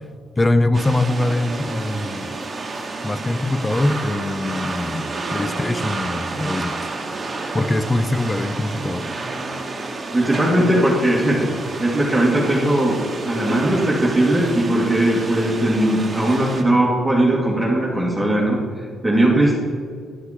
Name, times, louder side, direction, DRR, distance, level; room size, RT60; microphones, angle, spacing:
voice 1, 0.4-2.4 3.0-6.7 7.5-9.1, left 2 dB, 20° left, 11 dB, 0.5 m, -22 dB
sound 1, 0.7-16.6, right 3 dB, 30° right, 1.4 m, -30 dB
voice 2, 10.1-11.5 11.8-13.0 13.2-19.5, right 1 dB, 10° right, -4 dB, 1.8 m, -19 dB
11.0 x 6.5 x 4.9 m, 2.1 s
cardioid pair, 90°, 0 cm